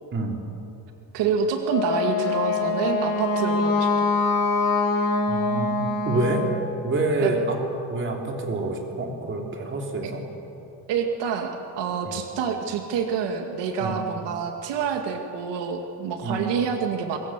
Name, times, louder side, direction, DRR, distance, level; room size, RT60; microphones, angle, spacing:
voice 1, 1.1-3.9 7.2-7.3 10.0-10.1 10.9-17.2, right 6 dB, 70° right, 4 dB, 2.1 m, -27 dB
Wind instrument woodwind instrument, 1.7-6.6, left 3 dB, 45° left, 3.6 m, -24 dB
voice 2, 5.3-6.5 6.8-7.6 7.9-10.2 12.1-12.2 13.8-14.0 16.2-16.5, right 2 dB, 25° right, 1 dB, 3.3 m, -27 dB
25.5 x 22.0 x 7.5 m, 2.9 s
cardioid pair, 165°, 44 cm